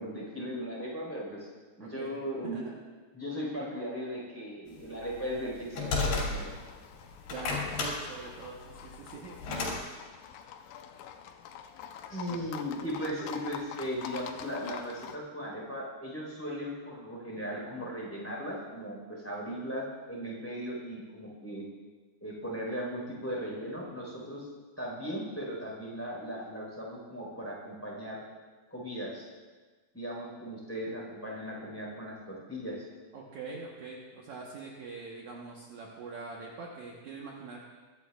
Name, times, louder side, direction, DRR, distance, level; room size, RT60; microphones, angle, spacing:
voice 1, 0.0-1.5 1.8-2.7 3.1-6.5 12.1-21.7 22.2-24.5 24.8-28.2 28.7-29.2 29.9-32.8, equal, 5° left, -4 dB, 3.6 m, -37 dB
voice 2, 1.8-2.1 2.4-2.7 7.3-10.0 12.3-12.4 13.2-13.3 33.1-37.6, right 4 dB, 70° right, -2 dB, 1.8 m, -44 dB
sound 1, 5.0-6.7 7.1-9.8, left 3 dB, 65° left, 4.6 m, -32 dB
Livestock farm animals working animals, 6.3-15.2, left 8 dB, 85° left, 2.8 m, -46 dB
23.0 x 12.0 x 2.4 m, 1.4 s
omnidirectional pair, 5.0 m